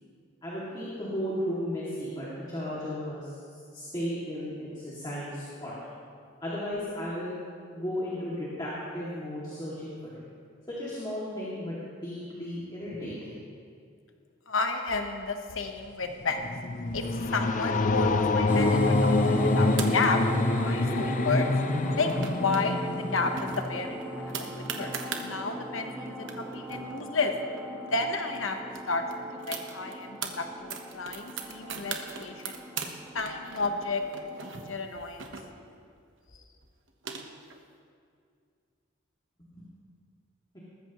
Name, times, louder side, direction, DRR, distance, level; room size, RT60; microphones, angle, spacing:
voice 1, 0.4-5.7 6.4-7.4 7.7-10.2 10.7-11.8 12.0-13.4 39.5-39.7, equal, 20° left, -8 dB, 2.4 m, -35 dB
voice 2, 14.5-16.5 16.9-20.2 20.5-21.5 21.9-24.9 25.2-27.3 27.9-28.6 28.9-32.6 33.1-34.0 34.4-35.3, left 3 dB, 85° left, 4 dB, 1.2 m, -32 dB
sound 1, 16.1-23.5, left 3 dB, 40° left, 0.6 m, -27 dB
sound 2, 18.5-34.7, equal, 5° right, 0.8 m, -35 dB
sound 3, 19.6-20.4 21.9-22.6 22.9-23.0 23.4-25.3 25.9-26.0 26.2-28.0 28.3-28.4 28.7-30.3 30.7-32.9 33.2-35.8 36.6-37.6, right 6 dB, 70° right, 1.2 m, -39 dB
20.0 x 14.0 x 3.1 m, 2.2 s
head